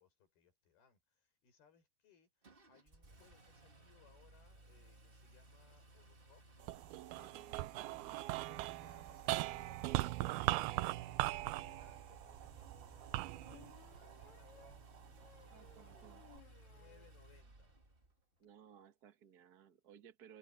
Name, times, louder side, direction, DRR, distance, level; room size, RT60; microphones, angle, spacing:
voice 1, 0.0-6.5 7.1-7.5 7.8-14.9 16.6-17.8, left 7 dB, 85° left, 7.4 m, -69 dB
Engine, 2.4-18.1, right 2 dB, 35° right, 0.8 m, -60 dB
sound 1, 6.6-15.1 15.7-16.4, right 18 dB, 90° right, 2.6 m, -40 dB
voice 2, 7.3-7.7 15.5-16.3 18.4-20.4, right 8 dB, 75° right, 0.9 m, -60 dB
sound 2, 12.9-17.2 17.5-17.6 17.9-18.0 18.2-18.4, left 7 dB, 50° left, 3.6 m, -64 dB
omnidirectional pair, 4.3 m